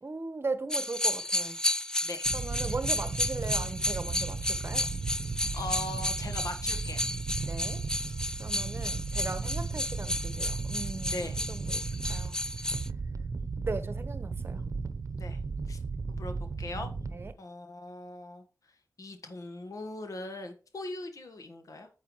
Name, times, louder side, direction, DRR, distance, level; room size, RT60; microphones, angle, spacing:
voice 1, 0.0-1.6 2.3-4.9 7.5-7.8 8.4-11.8 12.1-12.4 13.7-14.6 17.1-17.3, right 3 dB, 40° right, 1.2 m, -38 dB
sound 1, 0.7-12.9, left 1 dB, 10° left, 0.3 m, -33 dB
sound 2, 2.3-17.3, right 4 dB, 60° right, 0.8 m, -35 dB
voice 2, 5.5-7.0 11.1-11.4 15.1-15.4 15.7-15.8 16.1-16.9 17.4-18.4 19.0-21.9, left 2 dB, 70° left, 1.5 m, -40 dB
9.3 x 8.0 x 3.1 m
wide cardioid pair, 70°, 6 cm